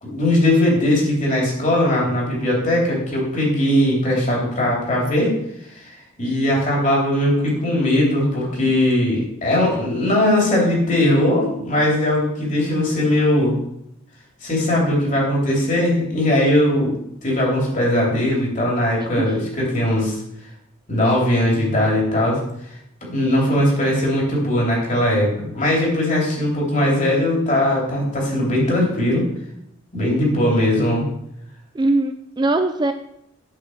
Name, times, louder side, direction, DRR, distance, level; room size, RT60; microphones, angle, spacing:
voice 1, 0.0-5.3 5.7-13.6 14.4-16.9 17.2-20.1 20.9-22.4 23.1-29.2 29.9-31.0, left 1 dB, 35° left, -3 dB, 3.0 m, -19 dB
voice 2, 31.7-32.9, right 2 dB, 20° right, 8 dB, 0.3 m, -20 dB
8.5 x 4.7 x 6.4 m, 0.77 s
head